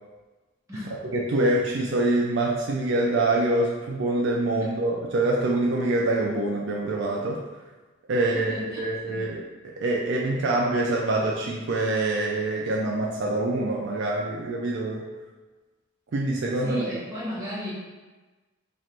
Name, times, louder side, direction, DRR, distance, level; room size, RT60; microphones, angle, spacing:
voice 1, 0.9-7.4 8.1-15.0 16.1-17.0, right 2 dB, 60° right, -2 dB, 0.4 m, -25 dB
voice 2, 8.1-9.2 16.6-17.7, left 1 dB, 15° right, -9 dB, 1.2 m, -35 dB
3.2 x 2.5 x 4.2 m, 1.2 s
head